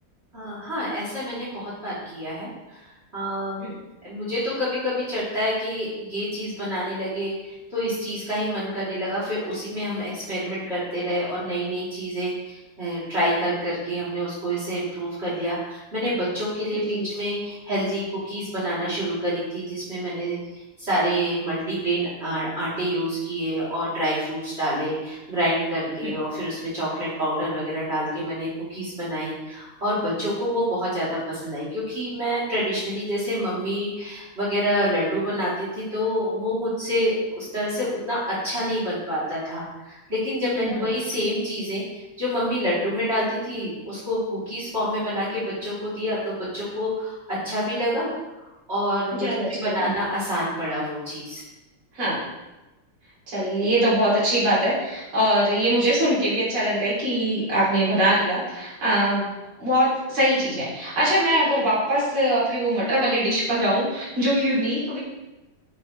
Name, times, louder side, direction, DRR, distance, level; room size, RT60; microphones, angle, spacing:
voice 1, 0.3-2.5 3.1-3.6 4.0-20.4 20.8-41.8 42.2-48.1 48.4-51.4, equal, 30° right, -9 dB, 3.4 m, -27 dB
voice 2, 16.7-17.0 26.0-26.1 40.5-40.9 49.1-49.9 51.9-52.2 53.3-59.3 59.6-65.0, right 1 dB, 75° right, -9 dB, 4.0 m, -22 dB
9.5 x 6.1 x 3.3 m, 1.0 s
omnidirectional pair, 2.4 m